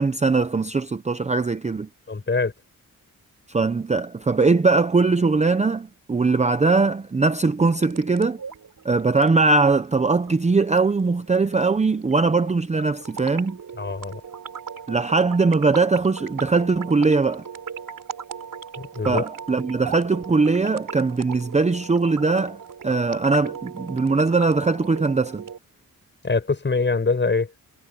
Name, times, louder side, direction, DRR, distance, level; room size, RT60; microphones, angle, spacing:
voice 1, 0.0-1.9 3.5-8.4 8.8-13.6 14.9-17.5 19.0-22.6 22.8-25.4, right 3 dB, 20° right, 0.6 m, -21 dB
voice 2, 2.1-2.5 13.8-14.2 18.8-19.2 26.2-27.5, left 4 dB, 30° left, 7.3 m, -23 dB
sound 1, 7.6-25.6, right 7 dB, 65° right, 3.7 m, -38 dB
wide cardioid pair, 135°, 36 cm